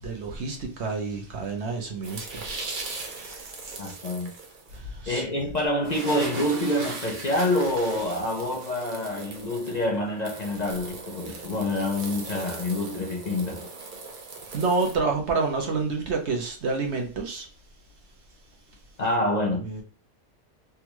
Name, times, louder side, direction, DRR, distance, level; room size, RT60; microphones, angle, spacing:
voice 1, 0.0-2.5 3.1-3.5 4.7-5.2 11.3-11.4 14.5-17.5 19.6-19.8, right 4 dB, 65° right, 1.1 m, -29 dB
sound 1, 2.0-4.8 5.5-5.6 5.8-14.9, right 3 dB, 50° right, 0.8 m, -39 dB
voice 2, 3.8-4.3 5.1-13.7 19.0-19.7, left 1 dB, 50° left, 0.5 m, -27 dB
3.5 x 2.3 x 3.0 m
omnidirectional pair, 1.2 m